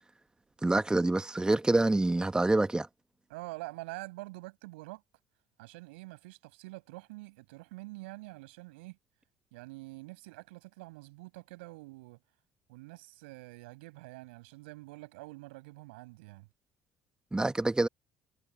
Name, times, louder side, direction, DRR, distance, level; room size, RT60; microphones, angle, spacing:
voice 1, 0.6-2.9 17.3-17.9, right 2 dB, 15° right, 1.4 m, -26 dB
voice 2, 3.3-5.0 5.6-9.0 9.5-12.2 12.7-16.5, right 23 dB, 75° right, 6.5 m, -46 dB
hypercardioid pair, 55°, 6 cm